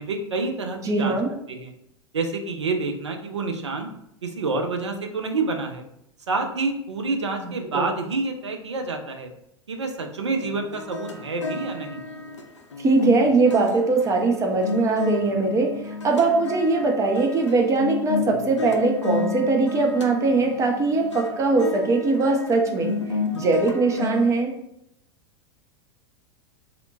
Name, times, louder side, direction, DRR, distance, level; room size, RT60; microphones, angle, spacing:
voice 1, 0.0-1.1 1.5-1.7 2.1-3.9 4.2-5.8 6.3-9.3 9.7-12.0, right 3 dB, 75° right, 5 dB, 0.4 m, -28 dB
voice 2, 0.8-1.3 7.4-7.9 12.8-22.9 23.3-24.5, right 3 dB, 20° right, 2 dB, 0.4 m, -21 dB
sound 1, 10.4-24.3, left 4 dB, 80° left, 0.4 m, -32 dB
2.8 x 2.1 x 2.6 m, 0.76 s
figure-of-eight pair, 90°, 15 cm